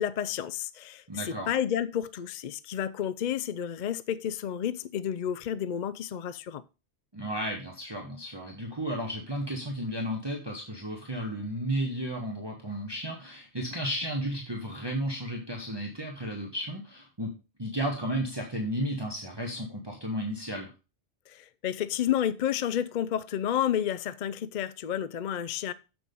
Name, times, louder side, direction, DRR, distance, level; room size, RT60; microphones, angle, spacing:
voice 1, 0.0-6.6 21.3-25.7, left 10 dB, 55° left, 0.5 m, -31 dB
voice 2, 1.1-1.5 7.1-17.3 17.6-20.7, equal, 20° right, 1.4 m, -33 dB
7.5 x 6.2 x 5.3 m
omnidirectional pair, 1.2 m